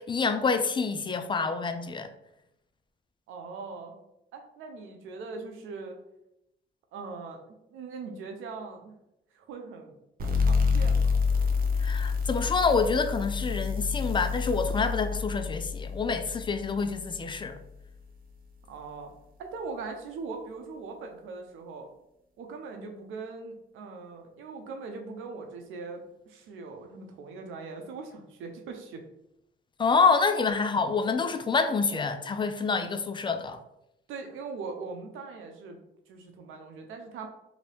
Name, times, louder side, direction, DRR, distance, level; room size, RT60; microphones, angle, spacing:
voice 1, 0.0-2.1 11.8-17.6 29.8-33.6, left 4 dB, 25° left, 0.4 m, -27 dB
voice 2, 3.3-3.9 4.3-6.0 6.9-8.9 9.3-10.0 10.4-11.2 18.7-19.1 19.4-21.9 22.4-29.1 34.1-37.3, right 4 dB, 90° right, 0.6 m, -41 dB
sound 1, 10.2-17.5, left 5 dB, 45° right, 0.6 m, -28 dB
2.8 x 2.6 x 3.2 m
cardioid pair, 90°, 20 cm